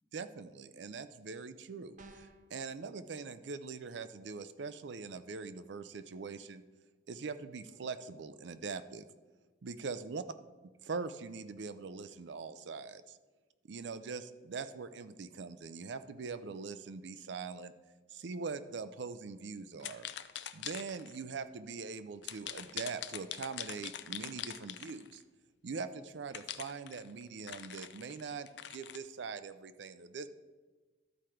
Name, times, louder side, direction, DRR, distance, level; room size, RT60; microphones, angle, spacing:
voice 1, 0.1-6.6 7.1-9.1 9.6-10.2 10.8-13.2 13.7-17.7 18.1-20.1 20.5-25.2 25.6-30.3, right 4 dB, 65° right, 12 dB, 0.5 m, -42 dB
sound 1, 2.0-2.5, right 2 dB, 40° right, 0.8 m, -53 dB
sound 2, 19.8-21.2 22.2-25.2 26.3-29.0, left 11 dB, 65° left, 0.4 m, -43 dB
12.5 x 4.4 x 4.9 m, 1.3 s
head